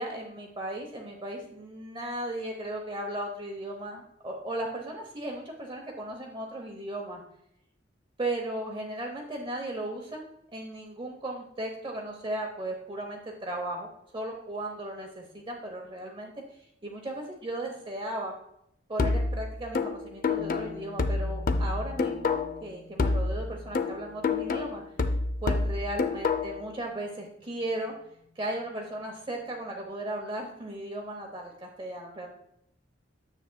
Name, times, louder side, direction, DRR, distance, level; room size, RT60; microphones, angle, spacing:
voice 1, 0.0-7.2 8.2-10.2 10.5-13.9 14.1-18.3 18.9-24.8 25.4-27.9 28.4-32.3, right 1 dB, 25° right, 0 dB, 0.9 m, -36 dB
sound 1, 19.0-22.7 23.0-26.7, left 3 dB, 50° left, 0.5 m, -28 dB
sound 2, 20.4-29.8, left 3 dB, 65° right, 1.0 m, -53 dB
9.4 x 7.1 x 2.3 m, 0.76 s
head